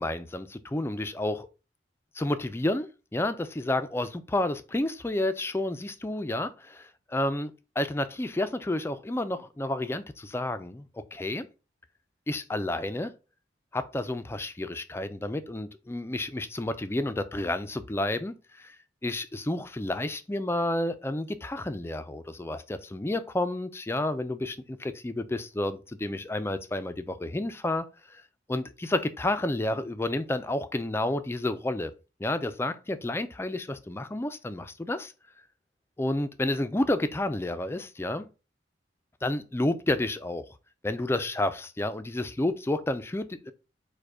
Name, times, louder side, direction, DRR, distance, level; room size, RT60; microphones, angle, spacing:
voice 1, 0.0-1.5 2.1-11.5 12.3-13.1 13.7-18.8 19.0-28.2 28.5-31.9 32.2-35.1 36.0-38.3 39.2-40.5 40.8-43.5, left 1 dB, 15° left, 0.3 m, -30 dB
4.8 x 2.2 x 4.7 m
head